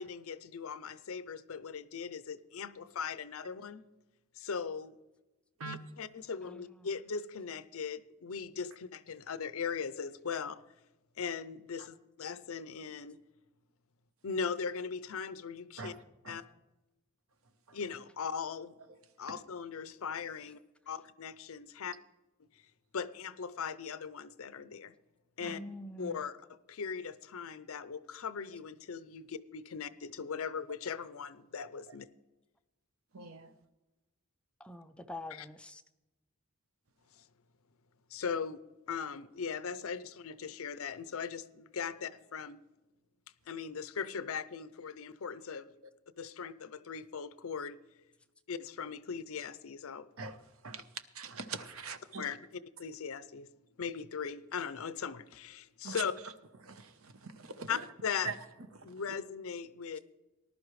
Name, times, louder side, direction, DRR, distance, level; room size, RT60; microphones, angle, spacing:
voice 1, 0.0-3.8 4.4-5.0 5.6-10.6 11.2-13.2 14.2-15.9 16.3-16.4 17.7-18.7 19.2-20.6 20.9-21.9 22.9-24.9 25.4-25.6 26.0-26.3 26.7-32.1 35.3-35.5 37.1-37.2 38.1-42.6 43.5-45.7 46.2-47.8 48.5-50.1 52.2-53.5 53.8-56.1 57.7-58.3 58.8-60.0, left 6 dB, 70° left, 0.6 m, -39 dB
voice 2, 6.4-6.9 25.4-26.2 34.6-35.8, left 1 dB, 5° left, 0.4 m, -45 dB
voice 3, 33.1-33.5 50.2-50.3 50.6-50.8 51.2-52.2 55.8-56.0 56.6-57.8 58.2-58.3, right 4 dB, 70° right, 0.9 m, -42 dB
19.0 x 11.5 x 3.2 m
head